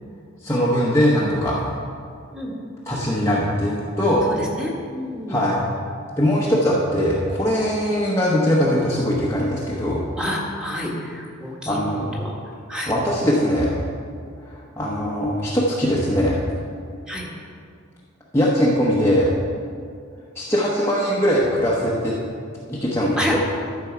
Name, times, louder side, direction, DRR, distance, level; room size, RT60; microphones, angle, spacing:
voice 1, 0.4-1.6 2.9-4.3 5.3-5.6 6.2-10.0 11.7-12.1 12.9-13.7 14.4-16.4 18.3-19.3 20.3-22.2 22.7-23.4, equal, 15° left, -6 dB, 1.1 m, -21 dB
voice 2, 4.2-5.4 10.2-12.3 12.7-12.9 17.1-17.3 23.2-23.3, left 1 dB, 5° right, -3 dB, 1.6 m, -29 dB
13.5 x 6.7 x 4.6 m, 2.3 s
head